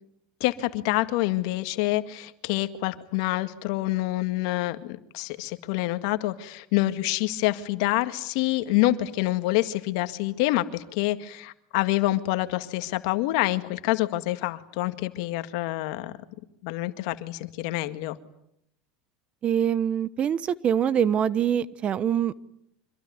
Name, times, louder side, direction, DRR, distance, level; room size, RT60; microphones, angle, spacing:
voice 1, 0.4-16.1 16.6-18.2, left 17 dB, 70° left, 10 dB, 1.9 m, -27 dB
voice 2, 19.4-22.4, right 9 dB, 35° right, 18 dB, 1.1 m, -24 dB
26.0 x 22.0 x 9.7 m, 0.75 s
supercardioid pair, 110°, 3 cm